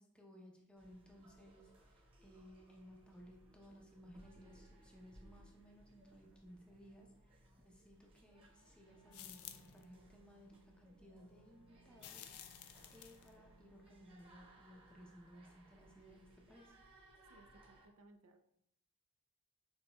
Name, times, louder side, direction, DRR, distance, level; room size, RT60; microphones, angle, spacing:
voice 1, 0.0-16.8, equal, 5° left, -1 dB, 0.6 m, -60 dB
sound 1, 0.8-17.9, right 1 dB, 25° right, 1.1 m, -65 dB
Wind instrument woodwind instrument, 8.8-14.7, right 4 dB, 85° left, 1.5 m, -70 dB
sound 2, 9.1-9.8 12.0-13.3, left 10 dB, 70° left, 0.4 m, -53 dB
voice 2, 17.3-18.5, right 2 dB, 70° right, 5 dB, 0.5 m, -64 dB
6.3 x 2.8 x 2.2 m, 0.76 s
head